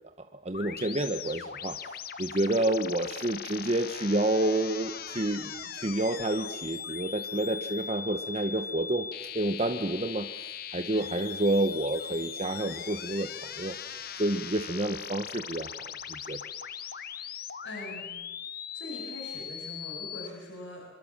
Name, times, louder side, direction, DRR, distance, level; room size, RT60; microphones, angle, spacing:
voice 1, 0.2-1.8 2.2-9.1 9.3-10.3 10.7-13.8 14.2-16.4, right 1 dB, 35° right, 7 dB, 1.0 m, -29 dB
sound 1, 0.5-20.3, left 8 dB, 50° left, 1.1 m, -40 dB
voice 2, 17.6-18.2 18.7-20.9, left 1 dB, 65° left, 0 dB, 7.0 m, -42 dB
25.5 x 24.0 x 7.4 m, 1.0 s
head